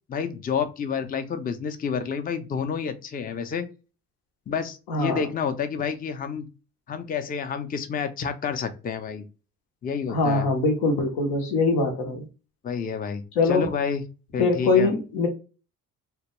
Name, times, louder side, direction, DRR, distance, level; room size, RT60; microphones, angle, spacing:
voice 1, 0.1-3.7 4.5-6.5 6.9-9.2 9.8-10.5 12.6-14.0 14.3-14.9, left 6 dB, 25° left, 9 dB, 0.4 m, -29 dB
voice 2, 4.9-5.2 10.1-12.3 13.4-13.7 14.4-15.3, left 3 dB, 85° left, 4 dB, 0.8 m, -22 dB
2.2 x 2.2 x 2.9 m, 0.33 s
supercardioid pair, 65°, 35 cm